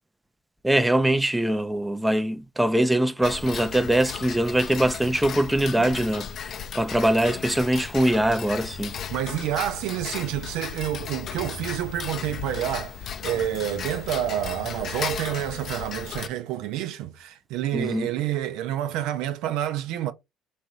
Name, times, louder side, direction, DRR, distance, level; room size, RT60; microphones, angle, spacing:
voice 1, 0.6-8.9 17.7-18.1, right 1 dB, 10° right, 0.6 m, -23 dB
Tick-tock, 3.2-16.3, left 7 dB, 55° left, 0.6 m, -35 dB
voice 2, 5.6-5.9 9.1-20.1, right 12 dB, 75° right, 0.6 m, -29 dB
4.2 x 2.6 x 4.7 m
hypercardioid pair, 70°, 0 cm